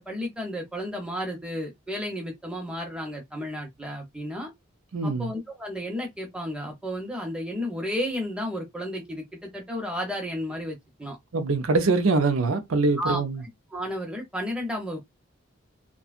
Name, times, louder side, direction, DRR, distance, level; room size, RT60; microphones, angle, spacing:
voice 1, 0.0-4.5 5.0-11.2 13.0-13.2 13.7-15.1, equal, 5° right, 0.7 m, -32 dB
voice 2, 4.9-5.3 11.3-13.4, right 3 dB, 85° right, 0.6 m, -23 dB
2.6 x 2.2 x 2.4 m
head